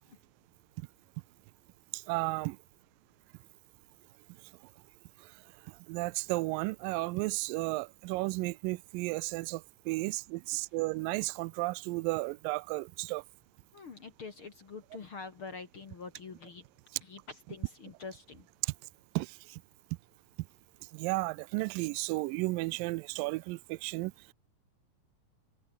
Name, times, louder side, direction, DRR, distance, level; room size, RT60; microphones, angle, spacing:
voice 1, 1.9-2.6 5.9-13.2 18.6-18.7 19.2-19.6 20.9-24.3, right 23 dB, 80° right, 2.1 m, -33 dB
voice 2, 13.7-16.6 17.0-18.5, left 4 dB, 40° left, 2.4 m, -45 dB
omnidirectional pair, 4.2 m